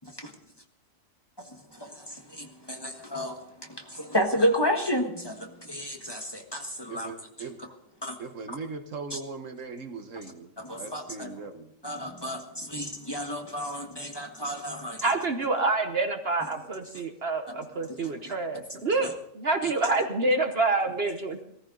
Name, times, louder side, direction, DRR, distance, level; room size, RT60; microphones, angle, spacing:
voice 1, 0.0-0.3 1.4-7.7 8.0-8.2 8.5-8.6 9.1-9.2 10.6-11.5 11.8-15.1 16.9-17.0 17.5-17.6 17.8-18.3 18.7-19.1 19.6-19.7, equal, 20° left, 1.5 m, -32 dB
voice 2, 6.9-7.6 8.2-10.5 10.8-11.7, right 4 dB, 70° right, 1.6 m, -39 dB
voice 3, 15.0-21.4, right 3 dB, 50° right, 1.2 m, -27 dB
19.5 x 14.5 x 3.9 m
omnidirectional pair, 1.4 m